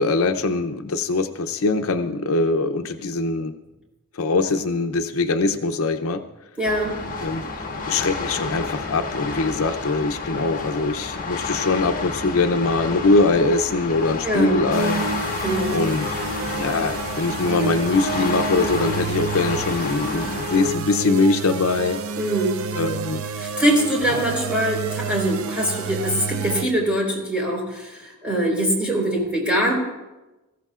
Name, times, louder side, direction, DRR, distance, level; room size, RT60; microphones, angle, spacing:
voice 1, 0.0-3.5 4.1-6.2 7.2-15.4 15.7-16.1 16.5-22.0 22.7-23.2 24.1-24.2, left 3 dB, 65° left, 7 dB, 0.6 m, -22 dB
sound 1, 6.6-20.8, left 3 dB, 40° left, 1.5 m, -30 dB
voice 2, 6.6-6.9 14.2-14.6 15.4-15.8 22.2-22.6 23.4-29.7, right 1 dB, 5° right, -2 dB, 4.1 m, -23 dB
sound 2, 14.7-26.7, right 4 dB, 65° right, 0.6 m, -29 dB
21.0 x 15.0 x 2.5 m, 1.1 s
head